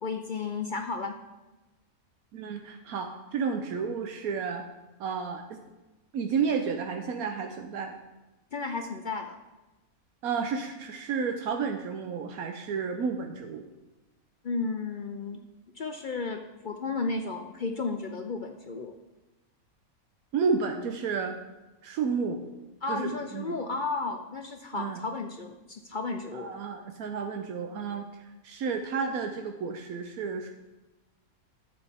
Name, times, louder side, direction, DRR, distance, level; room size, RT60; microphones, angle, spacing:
voice 1, 0.0-1.1 8.5-9.4 14.4-15.4 15.8-18.9 22.8-26.5, left 4 dB, 60° left, 6 dB, 0.5 m, -33 dB
voice 2, 2.3-4.7 5.0-5.6 6.1-7.9 10.2-13.6 20.3-21.4 21.8-22.4 22.9-23.6 24.7-25.0 26.3-28.1 28.4-30.5, right 5 dB, 85° right, 4 dB, 1.2 m, -31 dB
11.5 x 7.8 x 3.5 m, 1.1 s
omnidirectional pair, 1.5 m